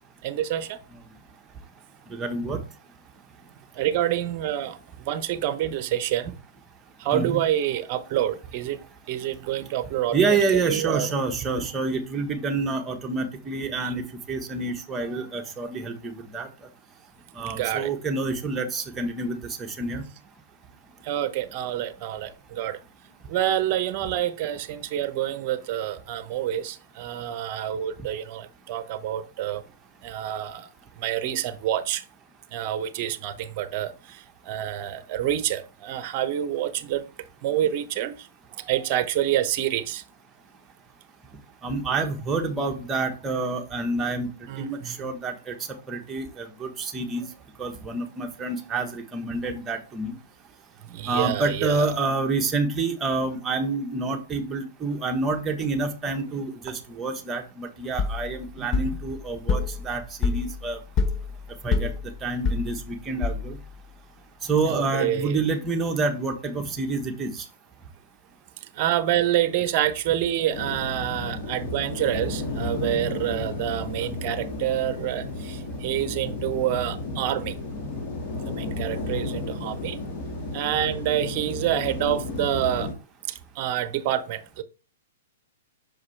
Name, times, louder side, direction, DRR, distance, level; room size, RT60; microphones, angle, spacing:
voice 1, 0.2-0.8 3.7-6.3 7.0-8.8 9.1-10.2 10.5-11.1 13.8-13.9 15.1-15.2 17.4-17.9 21.0-22.8 23.3-29.6 30.0-30.7 31.0-32.0 32.5-37.1 37.4-40.0 44.5-45.1 50.9-52.0 58.6-58.9 64.7-65.4 68.7-77.5 78.6-80.0 80.5-82.9 83.3-84.6, right 11 dB, 45° right, 0.8 m, -27 dB
voice 2, 2.1-2.6 7.1-7.4 10.1-16.5 17.4-20.0 41.6-44.3 44.6-45.5 45.9-47.2 47.6-50.1 51.1-60.8 61.6-61.9 62.2-63.6 64.5-67.4, right 3 dB, 15° right, 1.1 m, -28 dB
sound 1, 58.0-63.8, left 4 dB, 25° left, 0.6 m, -28 dB
sound 2, 70.5-82.9, left 2 dB, 45° left, 1.8 m, -33 dB
6.3 x 4.9 x 3.2 m
hypercardioid pair, 130°, 0 cm